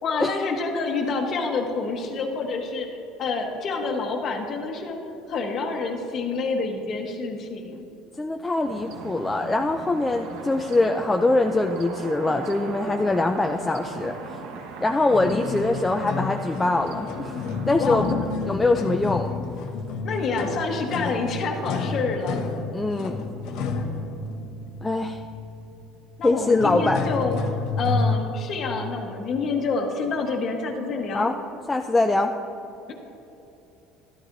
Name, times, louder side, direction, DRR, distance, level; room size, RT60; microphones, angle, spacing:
voice 1, 0.0-5.0 5.3-7.7 17.8-18.2 20.0-22.4 26.2-27.4 27.8-31.3 32.9-33.0, left 4 dB, 35° left, 2 dB, 1.1 m, -28 dB
voice 2, 8.2-14.4 14.8-17.3 17.7-18.1 18.5-19.3 22.7-23.2 24.8-25.2 26.2-27.0 31.1-31.3 31.7-32.3, left 2 dB, 10° left, 4 dB, 0.3 m, -23 dB
sound 1, 8.6-18.4, right 4 dB, 75° right, 1.1 m, -39 dB
sound 2, 15.1-28.2, left 4 dB, 60° left, 0.9 m, -30 dB
14.0 x 12.5 x 2.6 m, 2.9 s
cardioid pair, 160°, 0 cm